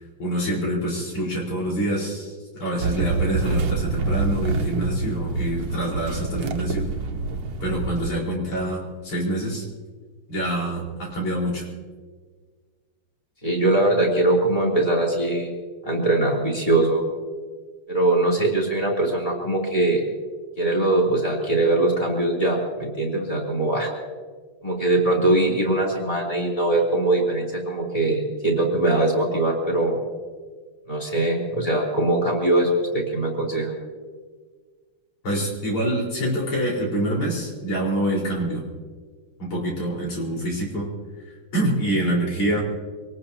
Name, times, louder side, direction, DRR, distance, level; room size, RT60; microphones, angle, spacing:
voice 1, 0.2-6.9 7.6-9.7 10.3-11.7 35.2-38.6 39.4-40.9 41.3-42.6, right 1 dB, 80° left, -3 dB, 5.6 m, -26 dB
sound 1, 2.8-8.1, right 3 dB, 60° right, 1.6 m, -26 dB
voice 2, 13.4-15.5 15.8-17.0 17.9-20.0 20.6-23.9 24.6-30.0 30.9-33.7, right 2 dB, 15° left, -2 dB, 3.5 m, -21 dB
26.0 x 18.5 x 2.9 m, 1.5 s
omnidirectional pair, 2.4 m